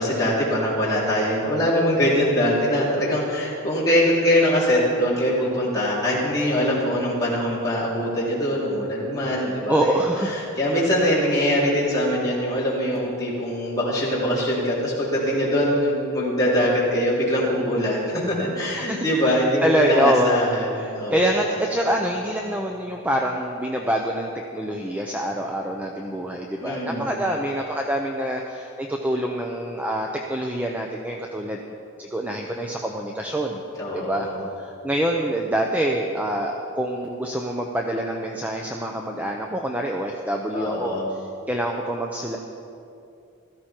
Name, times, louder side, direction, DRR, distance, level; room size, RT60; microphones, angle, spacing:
voice 1, 0.0-9.9 10.3-21.3 26.6-27.2 33.8-34.4 40.5-41.1, equal, 15° left, -7 dB, 3.5 m, -23 dB
voice 2, 9.7-10.4 18.7-20.5 20.7-31.6 32.0-33.6 33.9-34.3 34.6-41.0 41.5-42.4, right 1 dB, 5° right, 1 dB, 0.7 m, -25 dB
16.0 x 14.0 x 4.5 m, 2.6 s
head